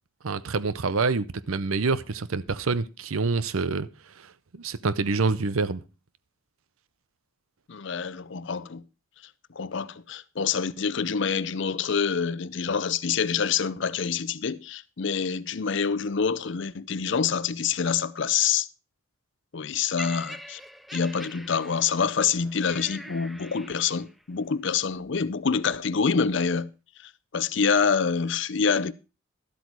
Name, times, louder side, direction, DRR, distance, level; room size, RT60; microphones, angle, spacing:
voice 1, 0.2-3.9 4.2-5.8, right 4 dB, 80° right, 0.7 m, -27 dB
voice 2, 7.7-8.8 9.5-18.7 19.5-20.6 20.9-26.7 27.0-28.9, left 6 dB, 60° left, 0.6 m, -26 dB
Laughter, 20.0-24.2 25.0-25.2, equal, ahead, 0.4 m, -43 dB
12.5 x 8.1 x 4.6 m
head